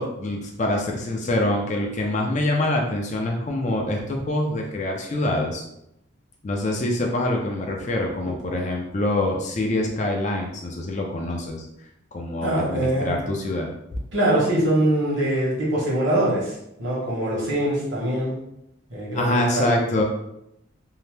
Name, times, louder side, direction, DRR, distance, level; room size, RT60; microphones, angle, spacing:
voice 1, 0.0-5.6 6.4-11.6 12.1-13.7 19.1-20.0, left 1 dB, 35° left, 1 dB, 0.4 m, -25 dB
voice 2, 12.4-13.1 14.1-18.3 18.9-19.8, right 1 dB, 65° right, -6 dB, 1.2 m, -23 dB
2.7 x 2.1 x 3.2 m, 0.80 s
head